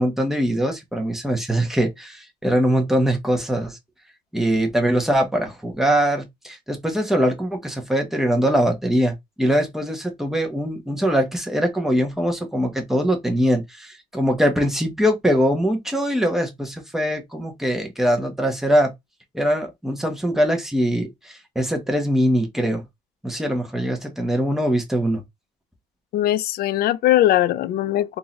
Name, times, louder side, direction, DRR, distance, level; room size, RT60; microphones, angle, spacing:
voice 1, 0.0-3.8 4.3-18.9 19.3-22.8 23.2-25.2, equal, ahead, 1.1 m, -22 dB
voice 2, 26.1-28.2, left 13 dB, 65° left, 0.5 m, -20 dB
3.7 x 2.7 x 3.0 m
cardioid pair, 110°, 17 cm